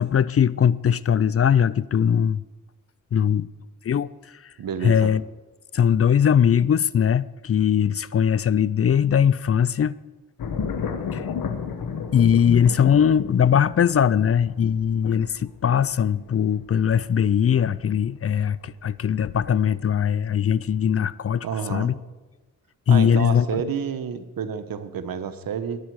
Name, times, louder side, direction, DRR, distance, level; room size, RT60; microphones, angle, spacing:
voice 1, 0.0-2.4 3.1-3.5 3.8-4.4 4.8-5.2 5.7-9.9 11.1-11.3 12.1-22.0 22.9-23.6, left 8 dB, 45° left, 0.4 m, -20 dB
voice 2, 4.6-5.1 21.4-21.9 22.9-25.8, right 7 dB, 80° right, 1.1 m, -29 dB
sound 1, 10.4-20.0 20.4-21.0, left 6 dB, 80° left, 1.2 m, -33 dB
20.0 x 8.8 x 4.8 m
cardioid pair, 60°, 34 cm